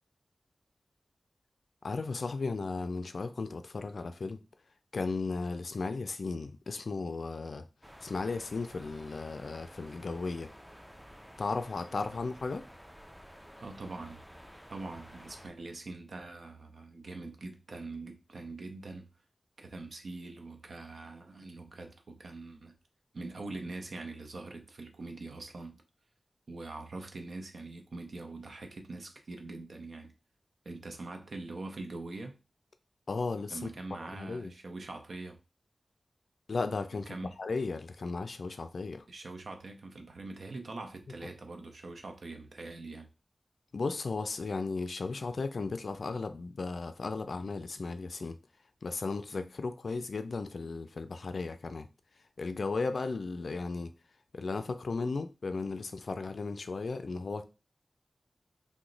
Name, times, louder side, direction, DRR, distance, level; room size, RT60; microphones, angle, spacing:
voice 1, 1.8-4.4 4.9-7.7 8.0-10.5 11.4-12.6 33.1-33.7 34.1-34.5 36.5-39.1 43.7-48.4 48.8-51.9 52.4-53.9 54.3-57.4, left 3 dB, 75° left, 0.3 m, -35 dB
sound 1, 7.8-15.5, equal, ahead, 0.4 m, -52 dB
voice 2, 13.6-14.2 14.7-19.1 19.6-22.8 23.1-25.8 26.5-30.1 30.6-32.4 33.5-35.4 37.1-37.3 39.1-43.1, right 2 dB, 80° right, 0.6 m, -43 dB
2.9 x 2.1 x 3.8 m
wide cardioid pair, 85°, 0 cm